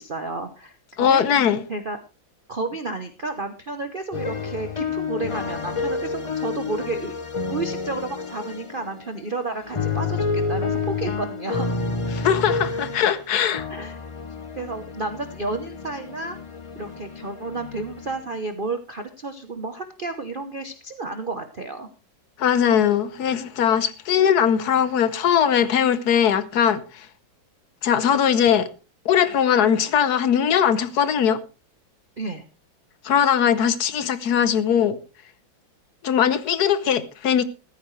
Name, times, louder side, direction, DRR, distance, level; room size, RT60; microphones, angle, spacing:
voice 1, 0.0-1.2 1.7-2.0 2.5-7.2 7.4-11.8 12.7-12.8 13.7-14.0 14.6-16.4 16.8-21.9 32.2-32.4, right 3 dB, 40° right, 0.8 m, -31 dB
voice 2, 1.0-1.6 12.1-13.7 22.4-27.1 27.8-28.7 29.0-31.4 33.0-35.0 36.0-37.4, left 8 dB, 60° left, 1.4 m, -20 dB
sound 1, 4.1-9.0 9.5-13.2 13.5-18.3, left 4 dB, 30° left, 0.5 m, -29 dB
15.0 x 14.0 x 3.2 m
omnidirectional pair, 2.1 m